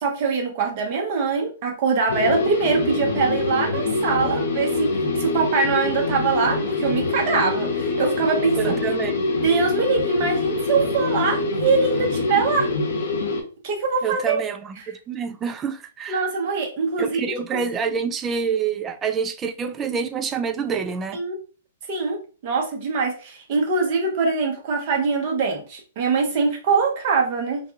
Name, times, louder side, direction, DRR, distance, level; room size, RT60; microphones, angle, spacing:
voice 1, 0.0-8.8 9.3-12.7 13.6-14.4 14.8-14.9 16.1-17.2 17.5-17.6 21.1-21.4 21.9-27.6, right 4 dB, 45° right, 0.9 m, -23 dB
sound 1, 2.1-13.4, left 3 dB, 65° left, 0.7 m, -25 dB
voice 2, 8.5-9.2 14.0-16.2 17.0-21.2, right 6 dB, 20° right, 0.3 m, -27 dB
2.5 x 2.2 x 2.8 m
hypercardioid pair, 120°, 0 cm